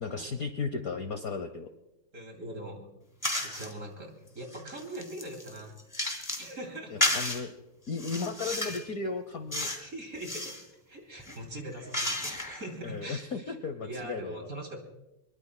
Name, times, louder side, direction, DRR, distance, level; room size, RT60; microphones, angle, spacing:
voice 1, 0.0-1.7 6.9-7.5 7.9-9.7 12.8-14.5, left 4 dB, 55° left, 8 dB, 1.1 m, -35 dB
voice 2, 2.1-2.8 3.4-5.7 6.0-6.1 6.4-7.4 9.6-10.5 10.9-13.5 13.8-14.8, right 1 dB, 40° right, 3 dB, 3.0 m, -42 dB
sound 1, 3.2-3.7 4.3-6.5 7.0-7.4 7.9-8.9 9.5-9.9 10.1-10.6 11.2-12.7, left 1 dB, 10° left, 2.1 m, -32 dB
23.5 x 22.5 x 2.2 m, 0.93 s
omnidirectional pair, 2.3 m